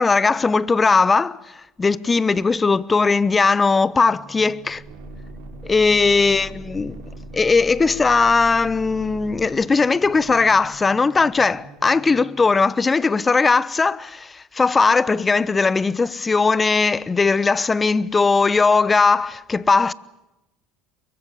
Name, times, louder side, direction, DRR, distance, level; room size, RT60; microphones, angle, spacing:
voice 1, 0.0-1.4 1.8-4.8 5.6-7.0 7.3-19.9, left 4 dB, 25° left, 1.0 m, -18 dB
sound 1, 3.9-12.5, right 2 dB, 75° right, 6.1 m, -40 dB
23.5 x 22.5 x 8.4 m
hypercardioid pair, 80°, 0 cm